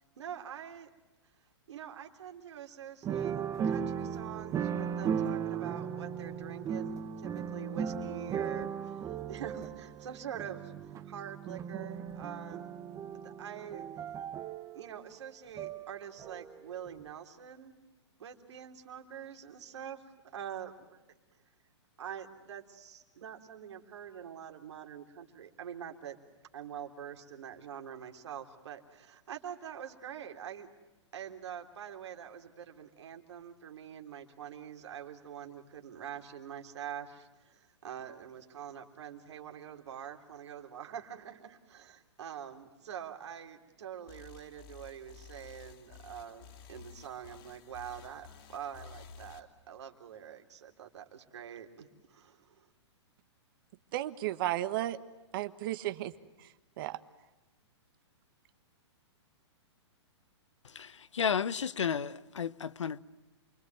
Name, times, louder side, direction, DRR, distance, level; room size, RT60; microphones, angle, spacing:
voice 1, 0.2-0.9 1.7-9.0 9.3-10.7 11.0-12.6 13.1-13.9 14.7-17.8 18.2-21.0 22.0-26.2 26.5-30.7 31.1-52.7, right 9 dB, 70° right, 3.3 m, -45 dB
sound 1, 3.0-16.7 17.0-17.1, right 7 dB, 20° right, 1.0 m, -37 dB
sound 2, 44.1-49.4, left 7 dB, 50° left, 3.5 m, -52 dB
voice 2, 53.9-55.0 55.3-56.1 56.8-57.0, right 14 dB, 50° right, 1.5 m, -33 dB
voice 3, 60.7-63.0, left 7 dB, 90° left, 1.0 m, -32 dB
28.5 x 22.0 x 9.2 m
hypercardioid pair, 135°, 15 cm